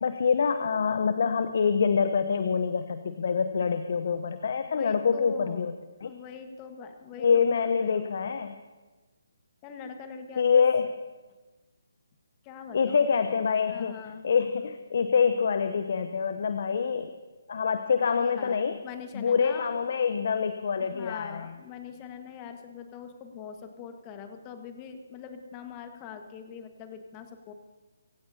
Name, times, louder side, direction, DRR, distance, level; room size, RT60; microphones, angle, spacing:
voice 1, 0.0-5.7 6.0-6.1 7.2-8.5 10.4-10.9 12.7-14.0 14.2-17.1 17.5-18.8 19.1-21.5, left 6 dB, 50° left, 10 dB, 0.8 m, -25 dB
voice 2, 4.7-5.7 6.0-8.1 9.6-10.6 12.4-13.1 13.7-14.2 18.2-19.7 20.8-27.5, left 6 dB, 20° left, 6 dB, 1.5 m, -43 dB
25.5 x 15.5 x 2.8 m, 1.2 s
figure-of-eight pair, 145°, 0 cm